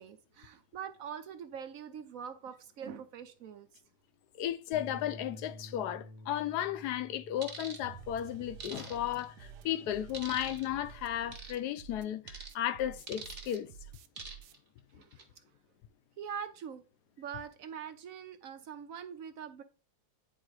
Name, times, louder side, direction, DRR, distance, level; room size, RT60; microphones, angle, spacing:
voice 1, 0.0-3.7 14.9-15.3 16.2-16.8 17.2-19.6, right 7 dB, 65° right, 1.0 m, -43 dB
voice 2, 4.4-13.7, left 11 dB, 80° left, 1.1 m, -34 dB
Bass guitar, 4.7-11.0, left 2 dB, 50° left, 1.0 m, -51 dB
sound 1, 7.4-7.8 8.6-9.2 10.1-10.7 11.3-11.6 12.3-12.5 13.1-13.6 14.2-14.6 15.0-15.2, right 4 dB, 35° right, 1.2 m, -44 dB
sound 2, 7.8-14.5, right 9 dB, 85° right, 1.2 m, -51 dB
8.9 x 3.6 x 4.6 m
omnidirectional pair, 1.8 m